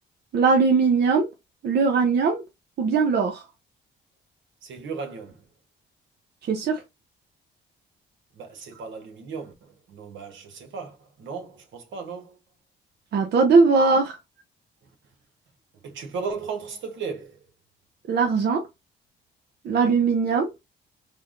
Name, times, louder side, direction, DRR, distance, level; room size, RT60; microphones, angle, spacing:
voice 1, 0.3-1.3 1.6-2.4 2.8-3.4 6.5-6.8 13.1-14.2 18.1-18.7 19.6-20.5, right 4 dB, 55° right, 0.7 m, -20 dB
voice 2, 4.6-5.4 8.4-12.4 15.8-17.4, right 5 dB, 70° right, 1.1 m, -36 dB
3.4 x 2.1 x 3.7 m
cardioid pair, 90°, 20 cm